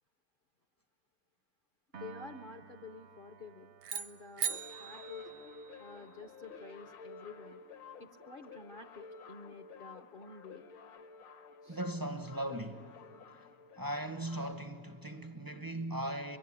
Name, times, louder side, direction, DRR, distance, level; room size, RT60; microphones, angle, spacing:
voice 1, 1.9-5.3 5.8-7.6 8.0-10.6 11.6-11.8, left 4 dB, 60° left, 0.5 m, -50 dB
Piano, 1.9-8.3, right 6 dB, 60° right, 0.7 m, -57 dB
sound 1, 3.8-6.1, right 7 dB, 80° right, 1.6 m, -40 dB
sound 2, 4.4-14.5, left 4 dB, 80° left, 1.9 m, -52 dB
voice 2, 11.7-12.9 13.8-16.4, right 1 dB, 35° right, 0.3 m, -38 dB
24.5 x 23.0 x 9.9 m
omnidirectional pair, 2.0 m